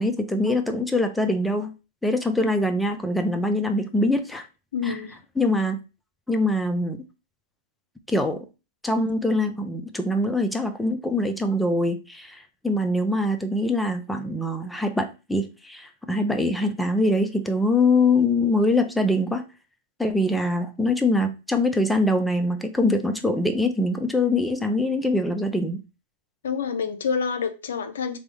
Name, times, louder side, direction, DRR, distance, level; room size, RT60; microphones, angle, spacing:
voice 1, 0.0-1.7 2.0-4.5 4.8-4.9 5.4-5.8 6.3-7.1 8.1-8.5 8.8-12.4 12.6-19.4 20.0-25.8, left 2 dB, 5° left, 0.4 m, -23 dB
voice 2, 4.7-5.1 26.4-28.2, left 6 dB, 80° left, 0.4 m, -27 dB
3.4 x 2.0 x 3.2 m
hypercardioid pair, 110°, 0 cm